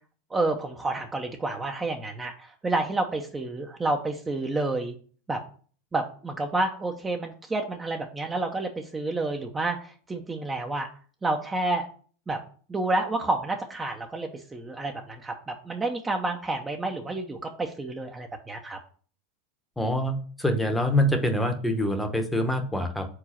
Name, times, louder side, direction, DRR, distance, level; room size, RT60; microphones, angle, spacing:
voice 1, 0.3-4.9 5.3-5.4 5.9-10.9 11.2-11.9 12.3-12.4 12.7-18.8, right 2 dB, 15° right, 3 dB, 0.8 m, -29 dB
voice 2, 19.8-23.1, left 1 dB, 5° left, 6 dB, 1.0 m, -25 dB
4.8 x 3.8 x 5.7 m, 0.43 s
supercardioid pair, 120°, 0 cm